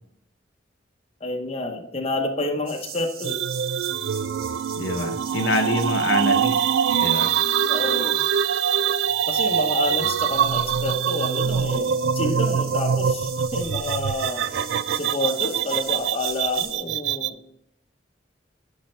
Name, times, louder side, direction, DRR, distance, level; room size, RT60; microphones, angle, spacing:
voice 1, 1.2-3.4 7.7-8.2 9.3-14.4 14.9-17.4, left 2 dB, 35° left, 3 dB, 0.8 m, -29 dB
sound 1, 2.7-16.8, right 6 dB, 55° right, 1.1 m, -41 dB
sound 2, 3.2-17.3, right 8 dB, 70° right, 0.3 m, -24 dB
voice 2, 4.8-7.3, left 2 dB, 80° left, 5 dB, 0.8 m, -26 dB
10.0 x 5.5 x 3.2 m, 0.78 s
head